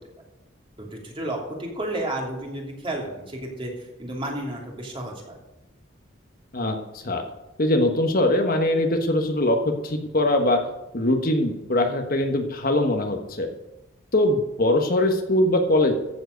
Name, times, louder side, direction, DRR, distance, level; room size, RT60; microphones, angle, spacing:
voice 1, 0.8-5.4, right 1 dB, 25° right, -1 dB, 3.0 m, -32 dB
voice 2, 6.5-7.2 7.6-10.6 10.9-13.5 14.1-15.9, left 1 dB, 45° left, 4 dB, 1.3 m, -22 dB
14.5 x 7.8 x 5.2 m, 0.97 s
head